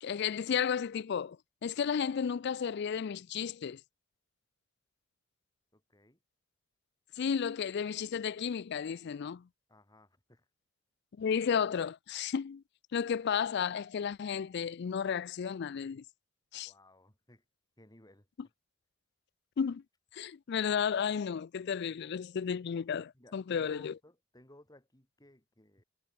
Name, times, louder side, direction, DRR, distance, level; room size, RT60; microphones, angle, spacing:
voice 1, 0.0-1.4 1.6-3.8 7.2-9.4 11.2-12.6 12.9-16.0 16.5-16.7 19.6-19.8 20.1-23.9, left 7 dB, 55° left, 0.4 m, -33 dB
voice 2, 5.7-6.2 9.7-10.4 16.6-17.4 17.8-18.3 23.1-25.8, left 1 dB, 20° left, 4.9 m, -59 dB
head